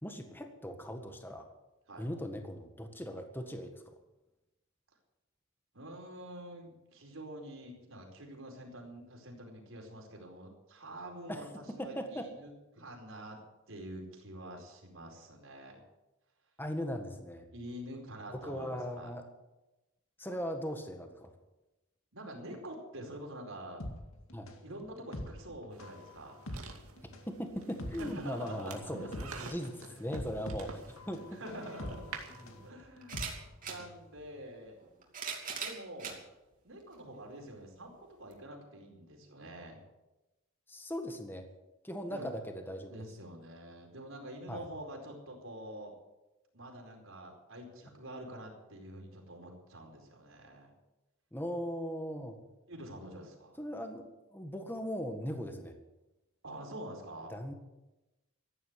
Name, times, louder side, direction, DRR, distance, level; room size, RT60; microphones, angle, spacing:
voice 1, 0.0-1.5 2.0-4.0 11.3-12.3 16.6-17.5 18.3-19.2 20.2-21.3 24.3-24.5 27.3-31.4 32.3-32.6 40.7-41.5 41.8-43.0 44.5-44.7 51.3-52.4 53.6-55.7 57.3-57.5, equal, 10° left, 5 dB, 1.7 m, -39 dB
voice 2, 5.7-13.4 13.7-15.8 17.5-19.1 22.1-23.8 24.6-26.5 28.0-29.2 29.8-29.9 31.1-32.2 32.6-33.1 33.6-34.8 35.6-36.2 36.6-37.9 38.2-39.8 42.1-42.3 42.9-46.0 46.5-50.7 52.7-53.6 56.4-57.3, right 1 dB, 65° right, 1 dB, 4.7 m, -46 dB
sound 1, 23.8-34.0 34.3-34.4, left 1 dB, 75° left, 2.2 m, -44 dB
Wood Creeks, 25.7-32.7, right 4 dB, 85° right, 2.4 m, -50 dB
sound 2, 31.6-31.7 33.0-33.8 34.8-36.2 36.9-37.0 38.3-38.4, right 6 dB, 40° right, 2.8 m, -40 dB
15.0 x 11.0 x 8.1 m, 1.0 s
head